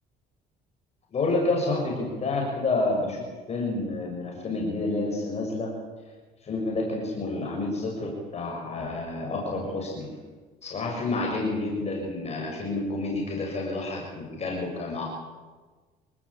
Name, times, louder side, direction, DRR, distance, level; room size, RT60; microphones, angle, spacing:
voice 1, 1.1-5.7 6.4-10.1 10.6-15.0, left 2 dB, 40° left, -1 dB, 7.1 m, -29 dB
27.0 x 18.5 x 8.8 m, 1.3 s
cardioid pair, 110°, 17 cm